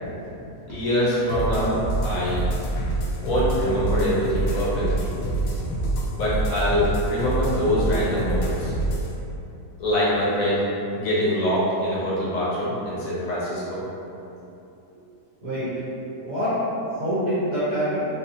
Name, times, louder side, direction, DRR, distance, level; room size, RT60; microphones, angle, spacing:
voice 1, 0.0-0.8 14.9-15.0 15.4-15.7 16.2-18.0, equal, 55° right, -12 dB, 1.5 m, -27 dB
voice 2, 0.7-2.5 3.2-5.1 6.1-8.7 9.8-10.6 10.9-13.8, equal, 60° left, -8 dB, 1.3 m, -24 dB
sound 1, 1.3-9.1, right 2 dB, 80° left, 1.2 m, -26 dB
4.3 x 2.7 x 2.7 m, 2.8 s
omnidirectional pair, 1.8 m